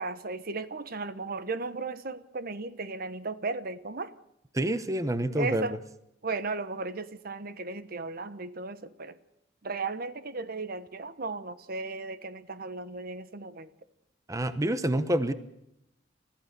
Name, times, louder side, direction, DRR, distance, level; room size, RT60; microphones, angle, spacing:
voice 1, 0.0-4.1 5.3-5.8 6.2-9.2 9.6-13.7, right 3 dB, 55° right, 13 dB, 1.1 m, -35 dB
voice 2, 4.5-5.7 14.3-15.3, right 1 dB, 20° right, 12 dB, 0.9 m, -27 dB
30.0 x 14.5 x 6.8 m, 0.83 s
head